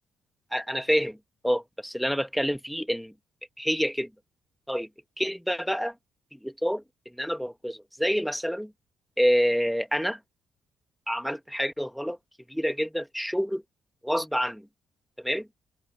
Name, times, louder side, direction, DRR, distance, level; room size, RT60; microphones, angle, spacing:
voice 1, 0.5-1.2 1.4-3.1 3.6-4.1 4.7-4.9 5.2-5.9 6.3-8.7 9.2-10.2 11.1-12.2 12.5-13.6 14.0-14.7 15.2-15.5, equal, ahead, 1.5 m, -27 dB
open air
cardioid pair, 90°, 0 cm